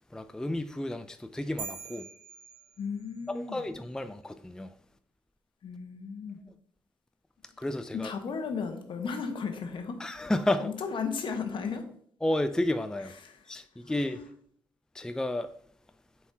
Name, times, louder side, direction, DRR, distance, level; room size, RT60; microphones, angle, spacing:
voice 1, 0.1-2.1 3.3-4.7 7.6-8.1 10.0-10.6 12.2-13.1 13.5-14.2 14.9-15.5, left 1 dB, 5° left, 0.4 m, -31 dB
sound 1, 1.6-3.3, right 6 dB, 90° right, 1.0 m, -43 dB
voice 2, 2.8-3.6 5.6-6.4 7.9-10.0 10.6-11.8 13.0-13.5 13.8-14.3, left 5 dB, 60° left, 1.2 m, -35 dB
7.8 x 4.6 x 2.8 m
supercardioid pair, 55°, 10 cm